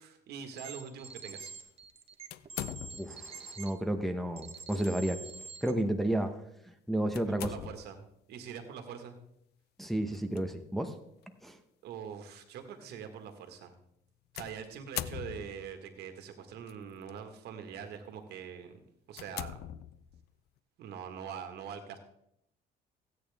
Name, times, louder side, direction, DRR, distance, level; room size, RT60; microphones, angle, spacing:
voice 1, 0.0-1.5 7.3-9.2 11.8-13.7 14.3-18.8 19.1-19.6 20.8-22.0, right 7 dB, 75° right, 6 dB, 1.7 m, -43 dB
sound 1, 0.5-3.7 4.4-5.7, right 4 dB, 35° right, 1.2 m, -46 dB
sound 2, 2.3-3.3 4.6-4.9 5.4-5.5 7.1-8.0 10.1-10.4 11.2-11.3 14.4-15.8 16.7-17.1 17.7-17.9 18.4-18.5 19.1-20.3, left 13 dB, 75° left, 0.5 m, -42 dB
voice 2, 3.0-5.2 5.6-6.4 6.7-7.5 9.8-10.9 11.4-11.6, right 1 dB, ahead, 4 dB, 1.0 m, -32 dB
15.5 x 9.1 x 3.5 m, 0.78 s
cardioid pair, 110°, 17 cm